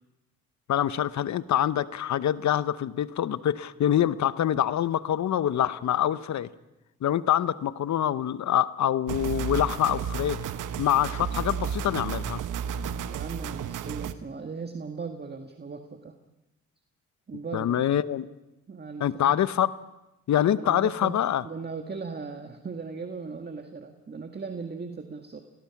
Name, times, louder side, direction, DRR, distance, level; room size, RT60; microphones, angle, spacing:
voice 1, 0.7-6.5 7.0-10.4 10.8-12.4 17.5-18.3 19.0-19.7 20.3-21.4, left 11 dB, 65° left, 16 dB, 0.9 m, -25 dB
sound 1, 9.1-14.1, right 8 dB, 75° right, 1.1 m, -32 dB
voice 2, 13.1-16.1 17.3-17.9 18.7-19.2 20.6-21.2 21.4-25.4, right 4 dB, 30° right, 6 dB, 1.8 m, -38 dB
27.5 x 18.5 x 6.0 m, 0.95 s
cardioid pair, 70°, 31 cm